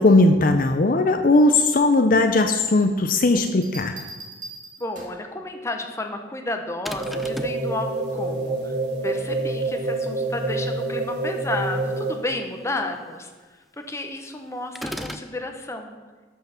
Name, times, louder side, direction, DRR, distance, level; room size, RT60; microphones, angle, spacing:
voice 1, 0.0-4.0, left 2 dB, 50° left, 7 dB, 0.6 m, -18 dB
sound 1, 3.4-5.3 6.9-7.3, right 2 dB, 45° right, 1.9 m, -41 dB
voice 2, 4.8-8.7 9.0-13.3 13.9-15.9, left 2 dB, 15° left, 4 dB, 1.0 m, -31 dB
sound 2, 6.9-7.7 14.8-15.3, equal, ahead, 0.4 m, -34 dB
sound 3, 7.0-12.4, right 2 dB, 70° right, 1.8 m, -27 dB
12.0 x 5.7 x 5.9 m, 1.4 s
head